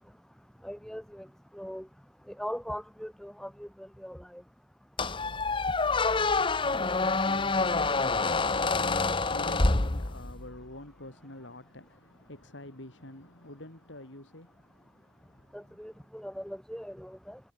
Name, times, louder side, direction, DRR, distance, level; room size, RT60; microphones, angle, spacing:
voice 1, 0.6-1.3 1.5-1.9 2.4-4.4 15.5-17.4, equal, 5° left, 4.3 m, -40 dB
Squeak, 5.0-10.5, left 3 dB, 25° left, 1.0 m, -27 dB
voice 2, 5.6-15.8, left 1 dB, 80° left, 4.5 m, -47 dB
head